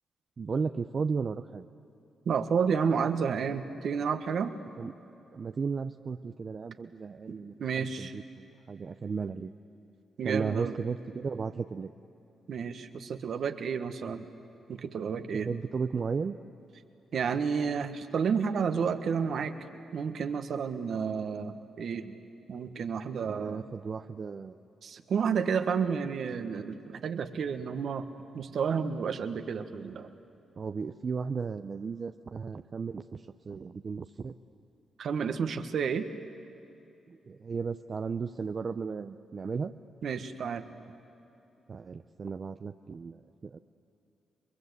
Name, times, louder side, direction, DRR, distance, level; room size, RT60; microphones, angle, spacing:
voice 1, 0.4-1.7 4.8-4.9 5.3-9.5 10.2-11.9 15.5-16.4 23.3-24.6 30.6-34.3 37.3-39.7 41.7-43.6, right 5 dB, 50° right, 8 dB, 0.7 m, -35 dB
voice 2, 2.2-4.6 7.6-8.1 10.2-10.7 12.5-14.3 14.7-15.5 17.1-19.5 19.9-22.1 22.5-23.6 24.8-28.1 28.3-30.1 35.0-36.1 40.0-40.6, right 6 dB, 70° right, 8 dB, 1.5 m, -31 dB
29.0 x 22.0 x 8.2 m, 2.8 s
supercardioid pair, 55°, 0 cm